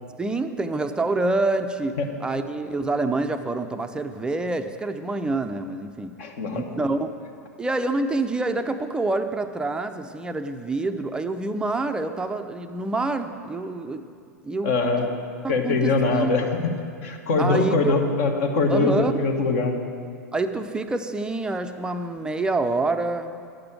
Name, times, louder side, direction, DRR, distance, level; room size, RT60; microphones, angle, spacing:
voice 1, 0.2-6.1 6.5-7.1 7.6-14.0 14.4-14.7 15.4-16.3 17.4-18.0 18.7-19.1 20.3-23.5, right 2 dB, 10° right, 7 dB, 0.5 m, -27 dB
voice 2, 6.2-6.6 14.6-15.1 15.5-16.7 17.0-19.7, left 3 dB, 50° left, 3 dB, 1.3 m, -22 dB
10.0 x 6.7 x 7.5 m, 2.2 s
figure-of-eight pair, 90°, 9 cm